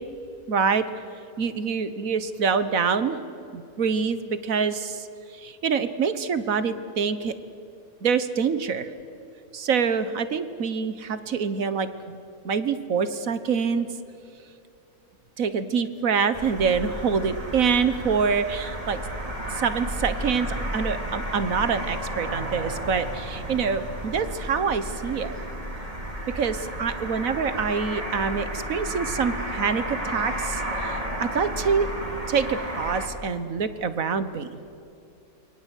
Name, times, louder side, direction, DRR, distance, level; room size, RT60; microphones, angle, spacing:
voice 1, 0.5-0.8 1.4-3.2 3.5-5.1 5.4-7.3 8.0-8.9 9.5-13.9 15.4-19.0 19.5-25.4 26.3-31.9 32.3-34.6, right 6 dB, 65° right, 12 dB, 1.6 m, -26 dB
sound 1, 16.3-33.1, equal, 25° right, 3.5 m, -32 dB
28.5 x 23.5 x 8.3 m, 2.7 s
omnidirectional pair, 1.5 m